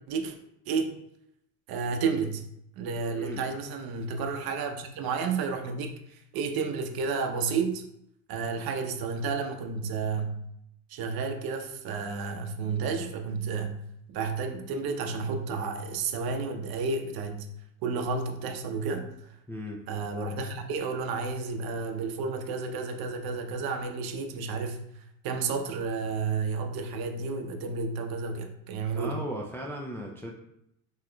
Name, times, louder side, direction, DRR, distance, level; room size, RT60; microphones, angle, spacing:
voice 1, 0.7-1.0 1.7-2.4 2.8-7.8 8.3-10.4 10.9-13.8 14.1-17.5 17.8-19.4 19.9-29.2, right 4 dB, 55° right, 5 dB, 0.7 m, -31 dB
voice 2, 3.1-3.4 19.5-19.8 28.9-30.3, equal, 5° left, -1 dB, 0.4 m, -37 dB
5.8 x 3.1 x 2.2 m, 0.78 s
supercardioid pair, 95°, 44 cm